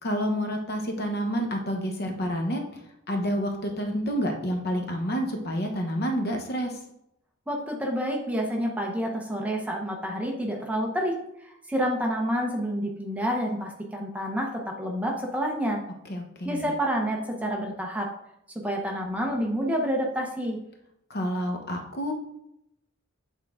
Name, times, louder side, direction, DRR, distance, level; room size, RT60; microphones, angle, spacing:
voice 1, 0.0-2.8 3.1-6.7 16.1-16.7 21.1-22.1, equal, 50° left, 3 dB, 1.0 m, -29 dB
voice 2, 7.5-15.8 16.4-18.1 18.6-20.6, equal, 5° right, 0 dB, 0.8 m, -28 dB
8.3 x 3.7 x 3.6 m, 0.79 s
head